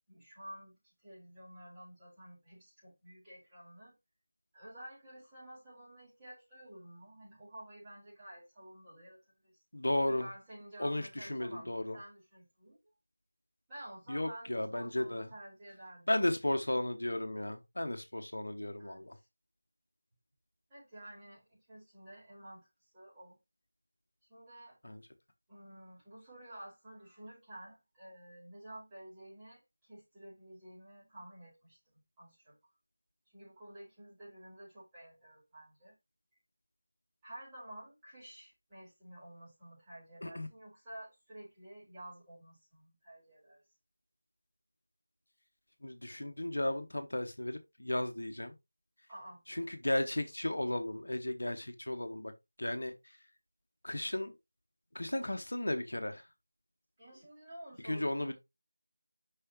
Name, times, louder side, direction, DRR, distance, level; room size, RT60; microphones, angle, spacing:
voice 1, 0.1-3.9 4.5-9.6 10.1-12.8 13.7-16.1 18.8-19.3 20.7-23.4 24.3-24.8 25.5-32.6 33.3-35.9 37.2-43.6 49.1-49.4 57.0-58.4, right 1 dB, 10° right, 5.1 m, -51 dB
voice 2, 9.7-10.3 10.8-12.0 14.1-15.3 16.1-19.2 24.8-25.0 40.2-40.5 45.8-48.5 49.5-52.3 52.6-52.9 53.8-54.3 54.9-56.2 57.8-58.4, left 1 dB, 65° left, 1.0 m, -34 dB
6.6 x 5.8 x 3.0 m
figure-of-eight pair, 165°, 0 cm